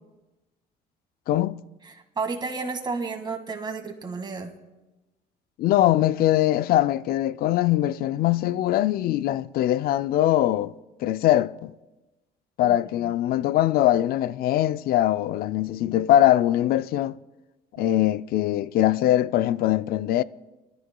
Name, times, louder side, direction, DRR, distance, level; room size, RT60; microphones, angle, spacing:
voice 1, 1.3-1.6 5.6-10.7 11.0-11.7 12.6-17.2 17.7-20.2, left 13 dB, 65° left, 0.4 m, -22 dB
voice 2, 1.8-4.5 12.6-12.8 13.0-13.1 17.8-17.9, right 4 dB, 25° right, 1.9 m, -32 dB
23.0 x 12.5 x 2.3 m
cardioid pair, 110°, 17 cm